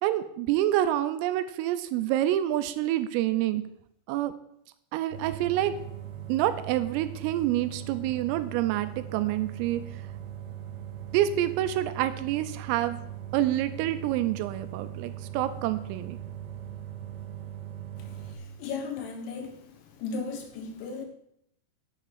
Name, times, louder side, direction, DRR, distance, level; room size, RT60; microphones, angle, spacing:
voice 1, 0.0-3.6 4.1-4.3 4.9-5.7 6.3-9.8 11.1-13.0 13.3-16.2, right 13 dB, 90° right, 11 dB, 3.3 m, -27 dB
sound 1, 5.1-18.4, right 10 dB, 65° right, 3.3 m, -40 dB
voice 2, 18.0-19.6 20.0-21.0, left 4 dB, 70° left, 3 dB, 3.4 m, -36 dB
8.6 x 7.5 x 8.1 m, 0.74 s
omnidirectional pair, 5.8 m